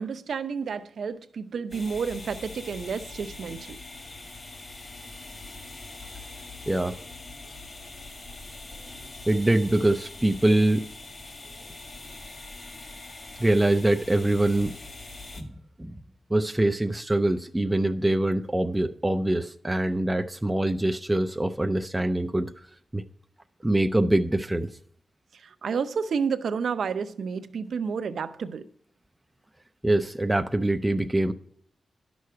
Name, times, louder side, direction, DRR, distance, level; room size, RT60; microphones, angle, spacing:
voice 1, 0.0-3.8 25.3-28.6, right 6 dB, 65° right, 0.7 m, -30 dB
sound 1, 1.7-15.4, left 2 dB, 35° left, 1.5 m, -43 dB
voice 2, 6.7-7.0 9.3-10.9 13.4-14.8 15.4-15.5 15.8-16.0 16.3-22.7 22.9-23.0 23.6-24.7 29.8-31.3, right 1 dB, 10° right, 0.4 m, -24 dB
11.0 x 6.4 x 5.6 m
wide cardioid pair, 155°, 0 cm